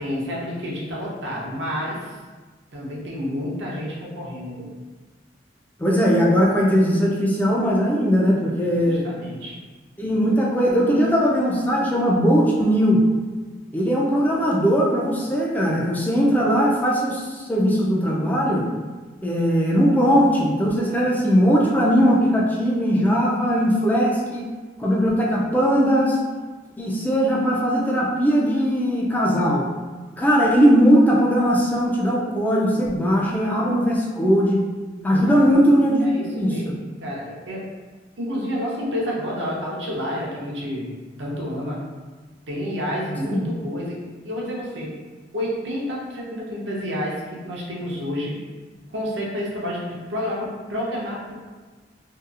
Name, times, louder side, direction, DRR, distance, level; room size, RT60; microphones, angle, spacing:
voice 1, 0.0-2.2 2.7-4.7 8.8-9.5 35.2-35.4 36.0-37.6 38.2-40.9 41.2-41.8 42.5-45.0 45.3-48.4 48.9-51.3, equal, 75° right, -4 dB, 0.7 m, -29 dB
voice 2, 5.8-9.1 10.0-13.1 13.7-18.7 19.2-24.5 24.8-26.2 26.8-29.7 30.2-34.6 35.0-36.6 43.2-43.4, equal, 10° left, -4 dB, 0.3 m, -19 dB
2.8 x 2.3 x 2.4 m, 1.3 s
head